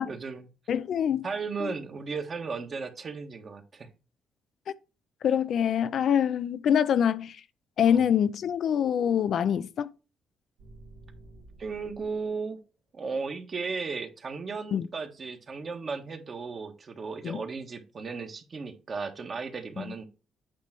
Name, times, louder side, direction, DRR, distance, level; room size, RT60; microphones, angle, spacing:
voice 1, 0.0-0.5 1.2-3.9 7.8-8.0 11.6-12.6 12.9-20.0, right 4 dB, 45° right, 1.4 m, -35 dB
voice 2, 0.7-1.3 1.6-1.7 5.2-7.4 7.8-9.9 14.7-14.9 17.2-17.4 19.8-19.9, left 8 dB, 65° left, 0.4 m, -25 dB
sound 1, 10.6-12.3, right 2 dB, 85° right, 1.7 m, -51 dB
8.4 x 3.2 x 6.0 m
cardioid pair, 90°, 0 cm